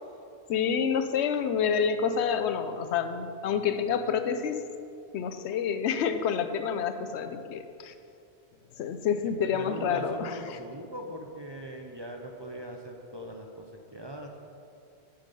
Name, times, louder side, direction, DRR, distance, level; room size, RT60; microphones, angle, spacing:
voice 1, 0.5-4.6 5.1-7.9 8.8-10.6, left 7 dB, 90° left, 9 dB, 0.9 m, -28 dB
voice 2, 9.4-14.3, equal, 30° right, 1 dB, 0.5 m, -40 dB
8.7 x 5.7 x 5.2 m, 2.5 s
omnidirectional pair, 1.1 m